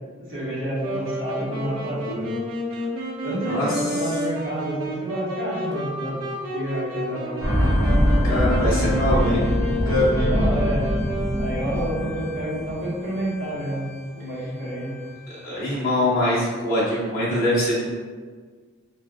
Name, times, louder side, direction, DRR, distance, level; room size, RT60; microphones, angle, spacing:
voice 1, 0.3-2.3 3.2-6.2 6.5-7.4 8.8-9.5 10.1-10.8 11.4-14.9, right 1 dB, 60° right, -9 dB, 1.1 m, -29 dB
Wind instrument woodwind instrument, 0.8-11.7, equal, 85° right, 0.5 m, -31 dB
voice 2, 3.3-3.9 8.2-9.4 9.9-10.5 11.7-11.9 15.4-18.0, left 1 dB, 40° left, -11 dB, 0.7 m, -23 dB
sound 1, 7.4-13.6 13.9-14.0, equal, 10° right, 0.6 m, -23 dB
2.6 x 2.4 x 2.4 m, 1.5 s
head